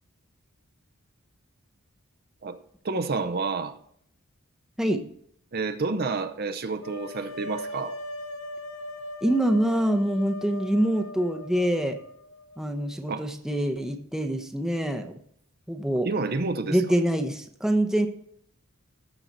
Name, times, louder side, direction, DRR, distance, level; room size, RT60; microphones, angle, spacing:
voice 1, 2.8-3.8 5.5-8.0 13.1-13.3 16.0-16.8, right 3 dB, 45° right, 9 dB, 0.7 m, -29 dB
sound 1, 6.8-12.7, left 1 dB, 70° left, 0.8 m, -39 dB
voice 2, 9.2-12.0 12.6-15.1 15.7-16.1 16.6-18.1, right 1 dB, ahead, 4 dB, 0.8 m, -25 dB
13.5 x 5.7 x 4.0 m, 0.65 s
head